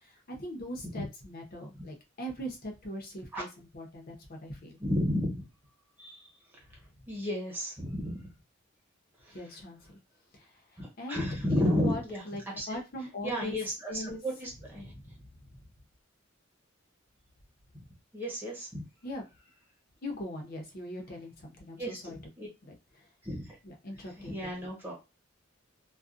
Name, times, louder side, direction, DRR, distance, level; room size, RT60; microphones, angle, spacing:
voice 1, 0.3-4.8 9.3-10.0 10.3-10.5 11.0-12.0 12.3-13.6 13.9-14.2 14.8-15.2 19.0-19.3 20.0-22.2 22.6-22.8 23.6-24.7, left 1 dB, 50° left, 2 dB, 0.7 m, -40 dB
voice 2, 4.8-5.4 6.0-6.2 7.1-8.2 10.8-12.2 12.6-12.8 13.2-14.9 18.1-18.8 21.8-22.5 23.2-23.5 24.2-24.9, left 1 dB, 10° right, -3 dB, 1.1 m, -32 dB
2.5 x 2.2 x 2.5 m, 0.27 s
head